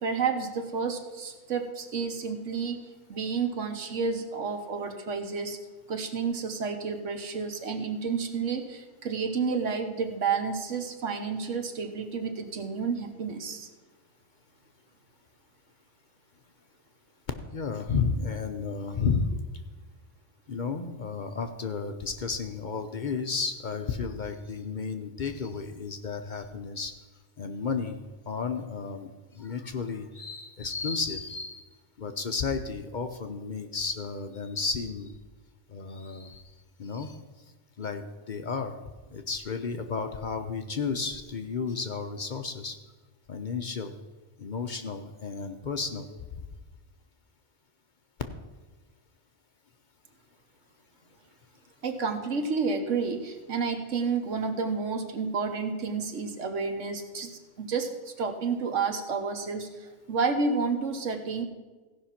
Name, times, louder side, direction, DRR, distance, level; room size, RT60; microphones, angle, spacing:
voice 1, 0.0-5.6 5.9-13.7 51.8-61.4, right 5 dB, 85° right, 7 dB, 1.4 m, -30 dB
voice 2, 17.5-19.3 20.5-26.9 27.4-28.0 28.3-31.6 32.0-35.1 35.7-36.4 36.8-37.2 37.8-38.7 39.1-42.8 43.3-43.9 44.4-46.1, left 5 dB, 50° left, 7 dB, 0.7 m, -32 dB
16.0 x 5.5 x 5.8 m, 1.3 s
omnidirectional pair, 1.2 m